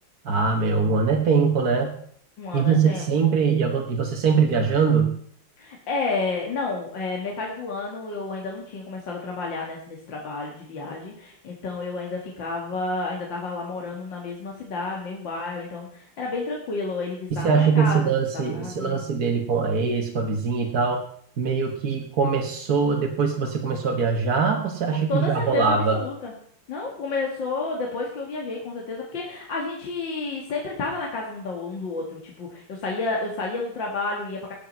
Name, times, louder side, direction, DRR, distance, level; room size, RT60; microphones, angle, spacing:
voice 1, 0.2-1.9 2.5-5.1 17.3-21.0 21.4-26.0, right 5 dB, 50° right, 2 dB, 1.6 m, -22 dB
voice 2, 2.4-3.0 5.6-18.0 18.3-19.0 24.9-26.3 26.7-34.5, left 3 dB, 60° left, -1 dB, 2.5 m, -31 dB
18.5 x 7.6 x 5.4 m, 0.63 s
omnidirectional pair, 2.4 m